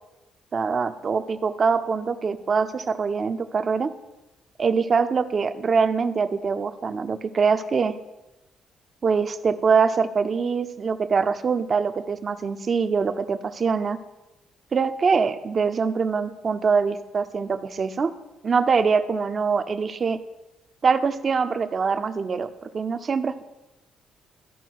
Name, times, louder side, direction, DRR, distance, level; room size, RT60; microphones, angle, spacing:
voice 1, 0.5-3.9 4.6-7.9 9.0-14.0 14.7-18.1 18.4-20.2 20.8-23.4, right 5 dB, 45° right, 10 dB, 0.6 m, -23 dB
13.5 x 4.9 x 4.7 m, 1.0 s
cardioid pair, 90°, 0 cm